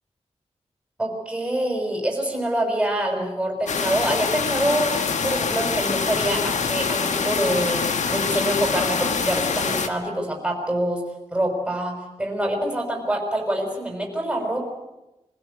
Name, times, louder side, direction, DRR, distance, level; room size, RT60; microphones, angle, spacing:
voice 1, 1.0-4.9 5.2-11.0 11.3-14.7, right 1 dB, 10° right, 2 dB, 5.9 m, -25 dB
sound 1, 3.7-9.9, left 5 dB, 85° left, 1.6 m, -25 dB
25.0 x 16.5 x 8.2 m, 0.96 s
wide cardioid pair, 145°, 12 cm